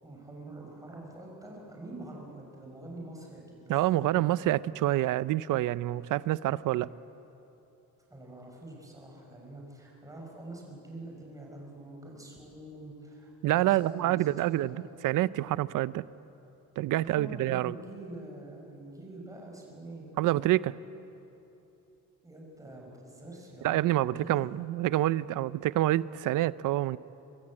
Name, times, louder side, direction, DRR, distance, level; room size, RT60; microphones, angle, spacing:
voice 1, 0.0-4.4 8.1-14.8 17.0-20.1 22.2-24.4, right 1 dB, 10° right, -1 dB, 5.8 m, -45 dB
voice 2, 3.7-6.9 13.4-16.0 16.8-17.7 20.2-20.7 23.6-27.0, right 15 dB, 65° right, 18 dB, 0.6 m, -27 dB
24.0 x 23.0 x 8.7 m, 2.9 s
cardioid pair, 165°, 34 cm